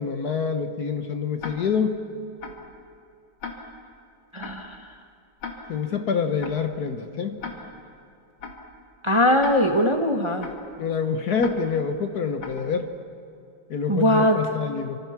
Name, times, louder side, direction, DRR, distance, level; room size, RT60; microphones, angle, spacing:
voice 1, 0.0-2.0 5.7-7.4 10.8-12.9 13.7-15.0, left 6 dB, 55° left, 8 dB, 1.5 m, -26 dB
Tick-tock, 1.4-1.5 2.4-2.5 3.4-3.5 4.4-4.5 5.4-5.5 6.4-6.5 7.4-7.5 8.4-8.5 9.4-9.5 10.4-10.5 11.4-11.5 12.4-12.5, left 5 dB, 85° left, 3.0 m, -35 dB
voice 2, 4.3-4.8 9.0-10.5 13.9-14.4, left 1 dB, 20° right, 4 dB, 1.1 m, -20 dB
27.0 x 25.5 x 5.9 m, 2.5 s
omnidirectional pair, 2.2 m